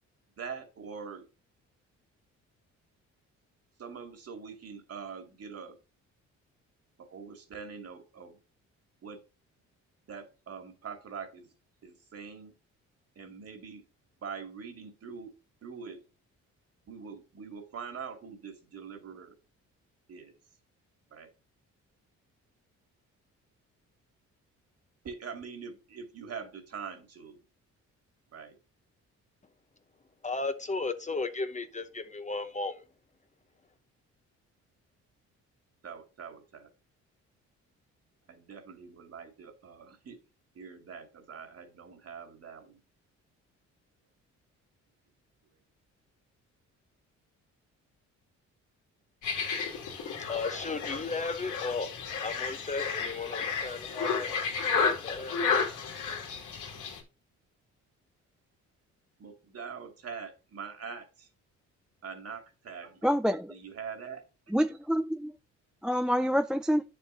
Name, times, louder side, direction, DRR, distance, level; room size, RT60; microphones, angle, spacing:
voice 1, 0.4-1.2 3.8-5.8 7.0-8.4 9.0-9.2 10.1-11.5 11.8-12.5 13.2-13.8 14.2-15.3 15.6-16.0 16.9-19.3 20.1-20.3 21.1-21.3 25.0-27.4 28.3-28.5 35.8-36.7 38.3-40.2 40.5-42.8 59.2-61.3 62.0-63.0 63.5-64.2, right 6 dB, 50° right, 2.3 m, -43 dB
voice 2, 30.2-32.8 50.0-51.9 52.2-54.3 54.8-55.4, left 3 dB, 25° left, 0.9 m, -35 dB
sound 1, 49.2-57.0, left 5 dB, 80° left, 2.5 m, -32 dB
voice 3, 63.0-63.5 64.5-65.3 65.8-66.8, equal, ahead, 0.4 m, -27 dB
9.3 x 7.0 x 2.7 m
cardioid pair, 90°, 30 cm